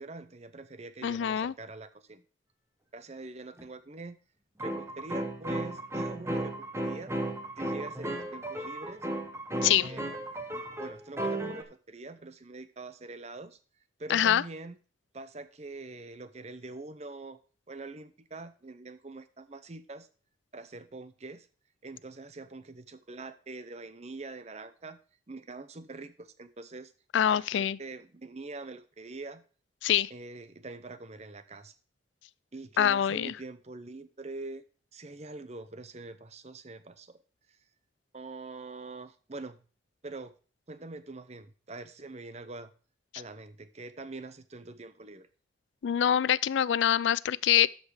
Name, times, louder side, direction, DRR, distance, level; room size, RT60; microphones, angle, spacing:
voice 1, 0.0-2.2 2.9-4.2 4.6-7.1 7.6-9.1 9.6-10.0 10.5-13.6 14.0-14.8 15.1-17.4 17.7-20.1 20.5-21.5 21.8-25.0 25.3-26.9 27.3-29.4 30.1-31.7 32.5-34.6 34.9-37.2 38.1-39.6 40.0-40.3 40.7-42.7 43.1-45.3, right 3 dB, 35° right, 0.7 m, -44 dB
voice 2, 1.0-1.5 9.6-9.9 14.1-14.4 27.1-27.8 29.8-30.1 32.8-33.4 45.8-47.7, left 10 dB, 85° left, 0.4 m, -25 dB
sound 1, 3.6-3.7 4.6-11.6, right 1 dB, 15° right, 1.1 m, -35 dB
13.0 x 5.3 x 4.9 m
head